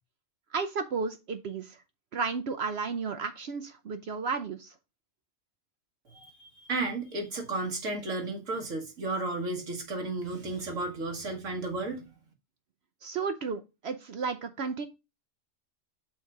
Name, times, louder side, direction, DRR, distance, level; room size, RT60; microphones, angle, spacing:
voice 1, 0.5-1.8 2.1-4.7 13.0-14.9, right 5 dB, 60° right, 0.8 m, -33 dB
voice 2, 6.1-12.1, right 2 dB, 80° right, 1.8 m, -33 dB
6.4 x 3.9 x 4.7 m
omnidirectional pair, 1.3 m